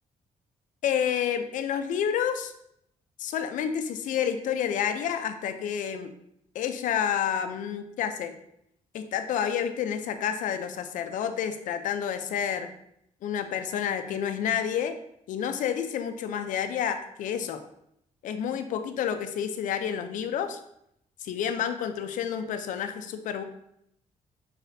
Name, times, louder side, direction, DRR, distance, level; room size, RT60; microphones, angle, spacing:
voice 1, 0.8-2.5 3.2-6.1 6.5-8.3 8.9-12.7 13.2-14.9 15.3-17.6 18.2-20.6 21.2-23.4, left 8 dB, 80° left, 8 dB, 0.5 m, -29 dB
4.9 x 4.1 x 2.6 m, 0.75 s
cardioid pair, 160°, 13 cm